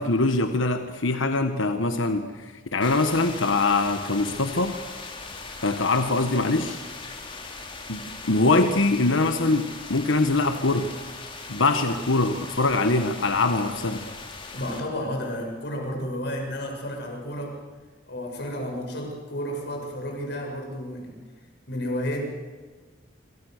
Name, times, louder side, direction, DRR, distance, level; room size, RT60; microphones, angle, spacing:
voice 1, 0.0-4.8 5.6-6.8 7.9-8.0 8.3-10.9 11.5-14.0, left 2 dB, 85° left, 7 dB, 1.4 m, -23 dB
sound 1, 2.8-14.8, left 3 dB, 25° left, 3.2 m, -39 dB
voice 2, 14.5-17.6 18.1-21.2 21.7-22.3, equal, 60° left, 1 dB, 6.9 m, -31 dB
27.0 x 26.0 x 6.7 m, 1.4 s
head